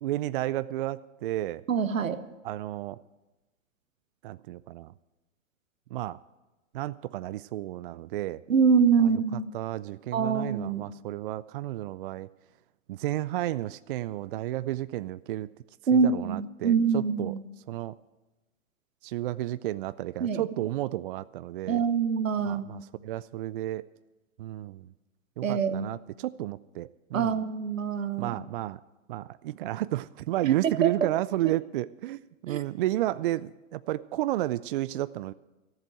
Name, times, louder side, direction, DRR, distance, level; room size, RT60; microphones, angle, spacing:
voice 1, 0.0-1.6 2.4-3.0 4.2-4.9 5.9-6.2 6.7-8.4 9.5-12.3 12.9-15.5 15.9-17.4 17.7-17.9 19.0-21.8 22.5-23.9 24.4-24.9 25.4-27.4 28.2-28.8 29.1-35.3, right 15 dB, 45° right, 16 dB, 0.4 m, -32 dB
voice 2, 1.7-2.2 8.5-9.5 10.1-10.9 15.9-17.4 20.2-20.4 21.7-22.9 25.4-25.9 27.1-28.3 30.4-31.1 31.4-31.5 32.5-32.6, right 6 dB, 85° right, 12 dB, 1.1 m, -25 dB
14.0 x 7.8 x 8.9 m, 1.1 s
hypercardioid pair, 125°, 38 cm